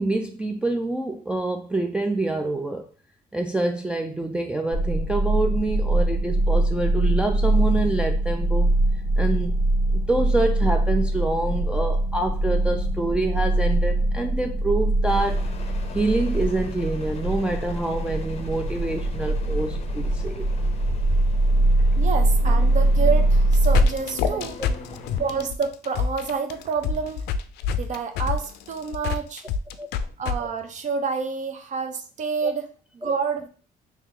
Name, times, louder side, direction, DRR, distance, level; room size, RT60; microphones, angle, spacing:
voice 1, 0.0-2.9 3.3-8.7 9.2-9.6 10.1-15.4 15.9-20.4 29.8-29.9 32.4-32.5 33.0-33.1, right 2 dB, 5° right, 0.3 m, -26 dB
sound 1, 4.7-23.9, right 1 dB, 80° right, 1.6 m, -22 dB
sound 2, 15.1-25.5, left 3 dB, 40° left, 0.6 m, -40 dB
voice 2, 21.9-24.6 25.2-27.2 27.7-29.4 30.2-33.5, right 5 dB, 45° right, 0.7 m, -28 dB
sound 3, 23.3-30.4, left 6 dB, 80° left, 0.4 m, -27 dB
3.2 x 2.9 x 3.6 m
cardioid pair, 110°, 17 cm